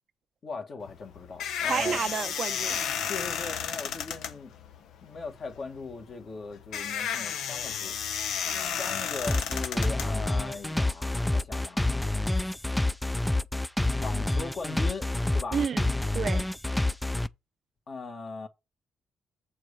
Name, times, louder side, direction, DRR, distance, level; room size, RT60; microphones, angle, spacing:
voice 1, 0.4-2.0 3.0-4.5 5.0-8.3 8.8-12.1 12.4-12.7 14.0-15.7 17.9-18.5, left 4 dB, 50° left, 1.9 m, -39 dB
sound 1, 0.8-10.8, left 8 dB, 80° left, 0.9 m, -33 dB
voice 2, 1.6-2.8 15.5-16.4, right 7 dB, 55° right, 0.5 m, -30 dB
sound 2, 9.3-17.3, left 2 dB, 5° left, 0.4 m, -27 dB
7.3 x 4.5 x 6.8 m
cardioid pair, 90°, 0 cm